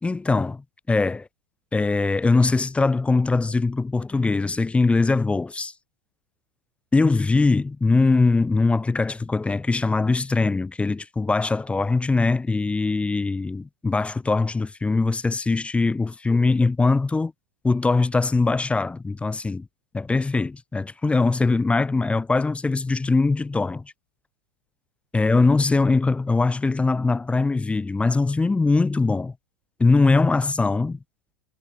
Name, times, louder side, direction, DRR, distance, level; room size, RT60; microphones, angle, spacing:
voice 1, 0.0-1.3 1.7-5.7 6.9-17.3 17.6-19.7 19.9-23.9 25.1-29.3 29.8-31.0, left 3 dB, 10° left, 0.8 m, -21 dB
hypercardioid pair, 100°, 11 cm